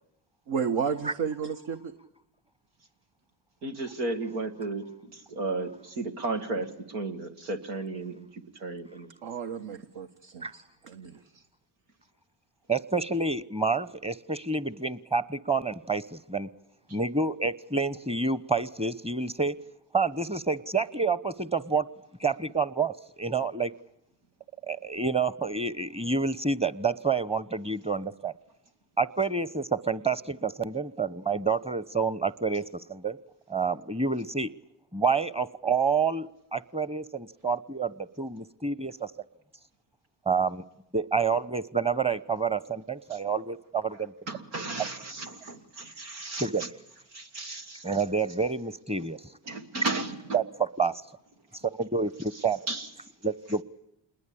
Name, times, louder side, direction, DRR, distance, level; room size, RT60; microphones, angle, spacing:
voice 1, 0.5-1.9 9.2-11.4, right 6 dB, 65° right, 7 dB, 1.5 m, -33 dB
voice 2, 3.6-9.1 43.1-43.2 43.9-46.7 47.1-48.1 49.0-49.1 49.4-50.4 52.3-52.9, right 2 dB, 85° right, 5 dB, 1.9 m, -35 dB
voice 3, 12.7-16.5 16.9-19.6 19.9-21.9 22.2-23.7 24.6-28.3 29.0-33.2 33.5-34.5 34.9-39.1 40.2-40.6 40.9-44.1 46.4-46.6 47.8-49.2 50.3-51.0 51.8-52.6 53.2-53.6, right 4 dB, 10° right, 17 dB, 1.1 m, -28 dB
28.0 x 21.0 x 8.7 m, 0.81 s
hypercardioid pair, 45°, 50 cm